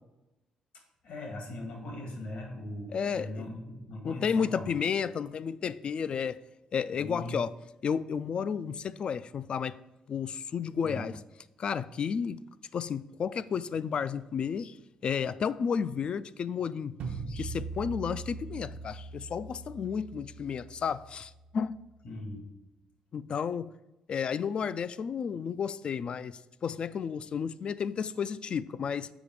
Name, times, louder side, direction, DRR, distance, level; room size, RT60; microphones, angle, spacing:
voice 1, 1.0-4.8 7.0-7.4 10.8-11.0 22.0-22.5, left 1 dB, 75° left, 1.9 m, -40 dB
voice 2, 2.9-3.4 4.0-6.4 6.7-7.5 7.8-9.8 10.1-11.2 11.6-12.4 12.7-14.8 15.0-17.0 17.3-21.8 23.1-23.8 24.1-29.1, left 6 dB, 50° left, 0.3 m, -32 dB
sound 1, 17.0-22.0, right 4 dB, 70° right, 0.7 m, -41 dB
7.0 x 5.0 x 4.7 m
cardioid pair, 115°, 2 cm